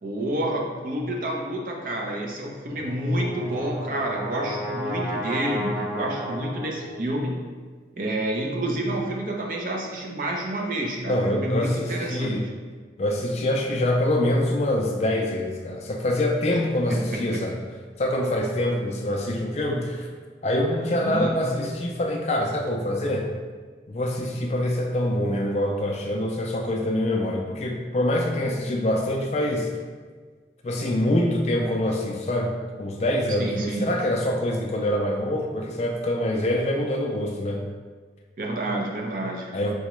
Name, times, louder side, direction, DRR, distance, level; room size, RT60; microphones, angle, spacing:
voice 1, 0.0-7.4 7.9-12.4 16.5-16.6 16.9-17.4 20.8-21.5 33.4-33.9 38.4-39.5, right 1 dB, 50° right, 0 dB, 0.5 m, -29 dB
Brass instrument, 2.7-7.0, equal, 10° right, 1.0 m, -32 dB
voice 2, 11.1-12.5 13.0-17.5 18.0-20.1 20.4-23.3 23.9-29.7 30.6-37.6 39.5-39.7, left 1 dB, 35° left, 1 dB, 0.3 m, -25 dB
4.6 x 2.1 x 3.0 m, 1.5 s
head